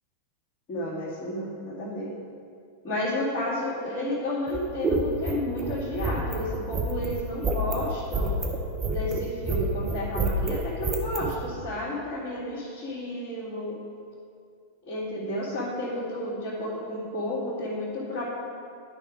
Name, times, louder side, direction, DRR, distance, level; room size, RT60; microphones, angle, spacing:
voice 1, 0.7-2.1 2.8-8.3 8.9-13.8 14.8-18.2, left 1 dB, 45° left, -9 dB, 2.1 m, -31 dB
sound 1, 4.5-11.3, right 3 dB, 20° right, 1.1 m, -28 dB
10.5 x 5.1 x 4.8 m, 2.3 s
figure-of-eight pair, 90°, 0 cm